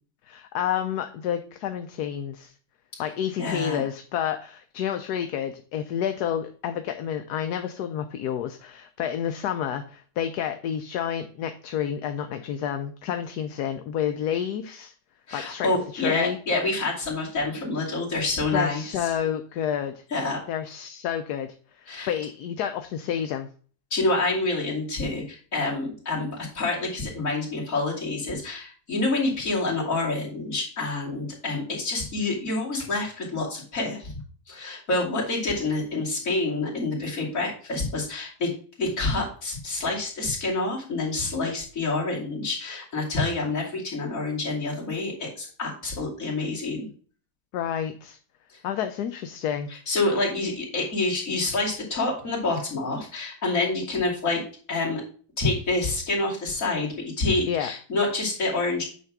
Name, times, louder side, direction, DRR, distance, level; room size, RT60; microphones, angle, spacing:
voice 1, 0.2-2.5 3.0-14.9 15.3-16.4 18.5-20.0 20.5-23.5 47.5-48.2 48.6-49.7 57.5-57.7, left 9 dB, 75° left, 7 dB, 1.2 m, -29 dB
voice 2, 3.4-3.8 15.3-18.8 20.1-20.4 21.9-22.1 23.9-34.1 34.5-38.5 38.8-46.9 49.7-54.4 54.7-55.0 55.4-58.8, left 2 dB, 50° left, -4 dB, 3.1 m, -27 dB
9.3 x 3.4 x 6.0 m, 0.42 s
omnidirectional pair, 1.8 m